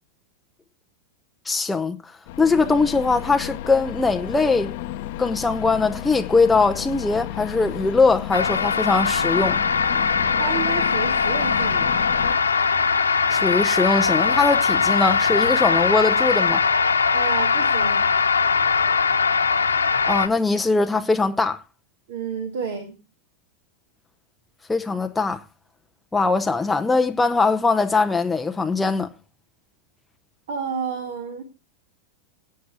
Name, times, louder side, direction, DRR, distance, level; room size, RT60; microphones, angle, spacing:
voice 1, 1.5-2.0 2.4-4.7 5.2-9.6 13.3-16.6 20.1-21.6 24.7-25.4 26.1-29.1, left 3 dB, 10° left, 0.7 m, -21 dB
sound 1, 2.3-12.4, left 13 dB, 50° left, 0.9 m, -33 dB
sound 2, 8.3-20.3, left 5 dB, 75° left, 1.3 m, -21 dB
voice 2, 10.4-11.9 17.1-18.1 22.1-22.9 30.5-31.4, right 6 dB, 55° right, 1.9 m, -30 dB
17.0 x 8.6 x 3.5 m
figure-of-eight pair, 90°, 0 cm